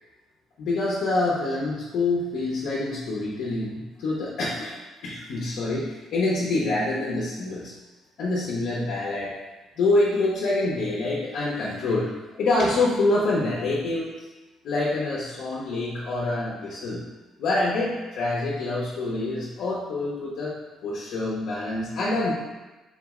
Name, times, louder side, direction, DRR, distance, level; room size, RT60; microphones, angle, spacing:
voice 1, 0.6-4.8 5.0-7.7 8.2-9.3 9.8-12.1 12.4-14.1 14.6-17.0 17.4-20.5 20.8-22.3, left 2 dB, 70° left, -5 dB, 0.8 m, -26 dB
3.9 x 3.1 x 3.6 m, 1.1 s
cardioid pair, 140°, 0 cm